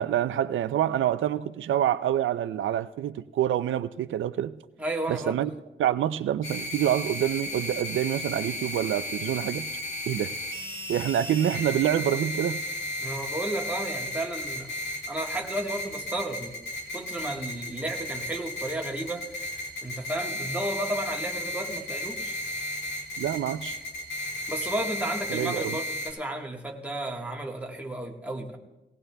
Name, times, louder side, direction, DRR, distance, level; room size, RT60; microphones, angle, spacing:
voice 1, 0.0-4.5 5.1-5.5 5.8-9.7 10.1-10.3 10.9-12.6 23.2-23.8 25.3-25.8, right 11 dB, 85° right, 0.4 m, -26 dB
voice 2, 4.8-5.5 13.0-14.7 15.1-16.7 16.9-19.4 19.8-22.4 24.5-28.6, right 1 dB, 5° right, 1.4 m, -33 dB
sound 1, 6.4-26.1, left 1 dB, 80° left, 3.3 m, -34 dB
19.0 x 18.0 x 2.3 m
wide cardioid pair, 130°, 20 cm